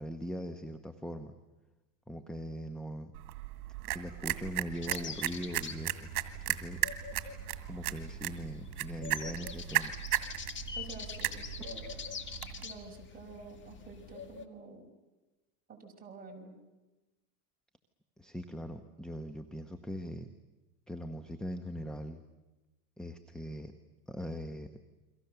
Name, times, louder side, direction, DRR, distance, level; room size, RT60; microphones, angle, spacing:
voice 1, 0.0-1.3 2.1-3.1 3.9-6.1 6.5-6.8 7.7-9.9 18.2-20.3 20.9-22.2 23.0-23.7 24.1-24.7, equal, ahead, 8 dB, 1.0 m, -41 dB
sound 1, 3.1-12.6, right 15 dB, 75° right, 2.1 m, -36 dB
sound 2, 4.7-14.4, left 6 dB, 25° left, 1.9 m, -45 dB
voice 2, 10.8-12.0 12.6-14.8 15.7-16.6, right 4 dB, 20° right, 0 dB, 6.2 m, -49 dB
30.0 x 23.5 x 6.9 m, 1.1 s
supercardioid pair, 130°, 45 cm